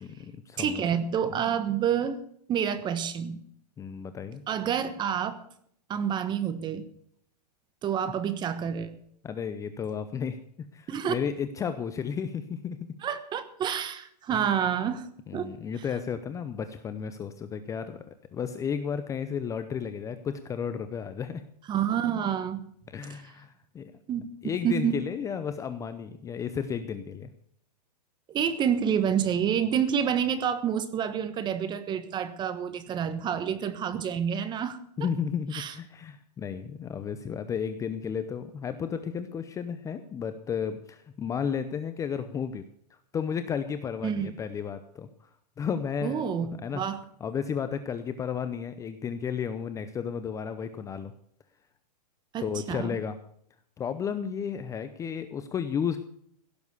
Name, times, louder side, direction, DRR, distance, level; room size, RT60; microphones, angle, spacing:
voice 1, 0.0-0.8 3.8-4.4 9.2-10.4 10.7-12.9 14.3-14.5 15.3-21.4 22.9-23.9 24.4-27.3 35.0-42.6 43.1-45.3 45.6-46.2 46.6-46.8 47.2-51.1 52.4-53.2 53.8-56.0, left 7 dB, 15° left, 11 dB, 0.7 m, -33 dB
voice 2, 0.6-2.2 2.5-3.4 4.5-5.4 5.9-6.9 7.8-8.9 10.9-11.1 13.0-15.1 15.3-15.5 21.7-22.6 23.1-23.2 24.1-25.0 28.3-34.8 35.5-35.8 44.0-44.3 46.0-47.0 52.3-52.9, right 8 dB, 20° right, 13 dB, 1.3 m, -28 dB
16.5 x 7.3 x 8.1 m, 0.66 s
hypercardioid pair, 140°, 21 cm